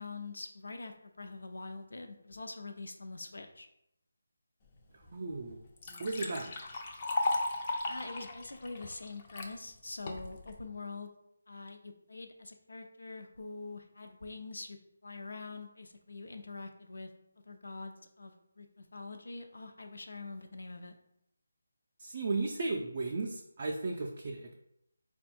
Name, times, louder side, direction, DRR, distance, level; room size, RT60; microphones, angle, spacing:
voice 1, 0.0-3.7 7.9-11.1 11.5-14.8 15.0-17.1 17.5-21.0, left 3 dB, 75° left, 5 dB, 0.6 m, -44 dB
Liquid, 5.0-5.1 5.5-9.5 10.1-10.5, left 2 dB, 25° left, 0.4 m, -35 dB
voice 2, 5.1-5.6 6.0-6.5 22.0-24.5, right 3 dB, 35° right, 0 dB, 0.4 m, -35 dB
3.6 x 2.2 x 4.2 m, 0.78 s
figure-of-eight pair, 170°, 0 cm